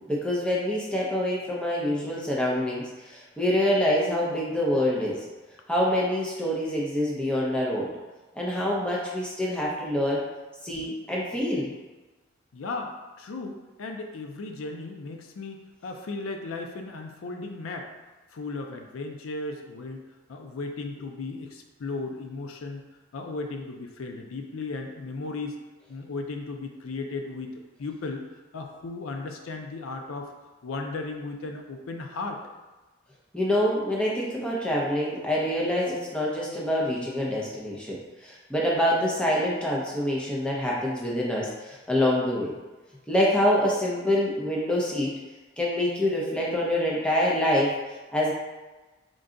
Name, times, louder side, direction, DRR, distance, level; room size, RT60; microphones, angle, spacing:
voice 1, 0.0-5.2 5.7-7.9 8.3-10.2 10.6-11.7 33.3-42.5 43.1-45.2 45.6-47.7 48.1-48.3, left 1 dB, 5° left, -5 dB, 0.6 m, -26 dB
voice 2, 12.5-17.9 18.3-20.0 20.3-22.8 23.1-25.6 25.9-30.3 30.6-32.4, left 3 dB, 90° left, 4 dB, 0.5 m, -36 dB
3.8 x 2.3 x 3.7 m, 1.2 s
head